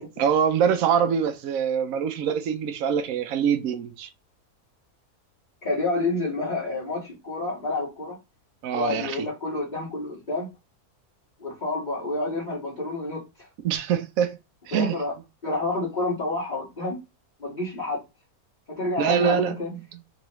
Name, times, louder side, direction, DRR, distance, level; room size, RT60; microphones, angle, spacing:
voice 1, 0.0-4.1 8.6-9.3 13.6-14.4 14.7-15.0 19.0-19.8, right 7 dB, 70° right, 1.0 m, -24 dB
voice 2, 5.6-8.2 8.7-10.5 11.4-13.2 14.7-15.1 15.4-17.0 17.4-18.0 18.8-19.7, left 2 dB, 30° left, 1.9 m, -29 dB
3.8 x 3.5 x 3.1 m
omnidirectional pair, 1.6 m